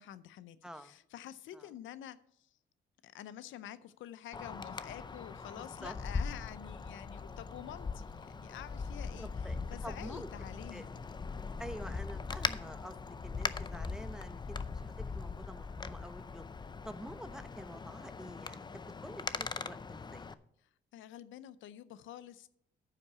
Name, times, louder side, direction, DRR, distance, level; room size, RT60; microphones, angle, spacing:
voice 1, 0.0-2.2 3.0-9.3 9.7-10.9 20.9-22.5, left 11 dB, 80° left, 15 dB, 0.6 m, -48 dB
voice 2, 0.6-1.0 1.5-1.7 5.6-6.0 9.2-9.6 9.8-10.3 10.7-10.8 11.6-16.4 16.8-20.3, equal, 5° right, 11 dB, 0.8 m, -48 dB
Wind, 4.3-20.3, left 4 dB, 20° left, 0.5 m, -40 dB
9.2 x 5.9 x 6.8 m, 0.69 s
cardioid pair, 90°, 20 cm